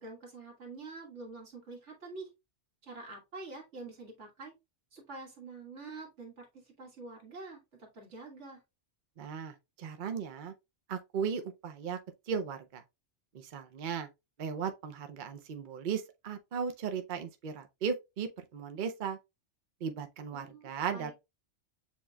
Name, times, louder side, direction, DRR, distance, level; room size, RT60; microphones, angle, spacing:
voice 1, 0.0-2.3 2.8-4.5 4.9-8.6 20.3-21.1, right 3 dB, 75° right, 1.9 m, -46 dB
voice 2, 9.2-10.5 10.9-12.0 12.3-12.8 13.3-14.1 14.4-19.2 19.8-21.1, right 6 dB, 50° right, 0.7 m, -36 dB
7.3 x 3.0 x 2.2 m
omnidirectional pair, 1.2 m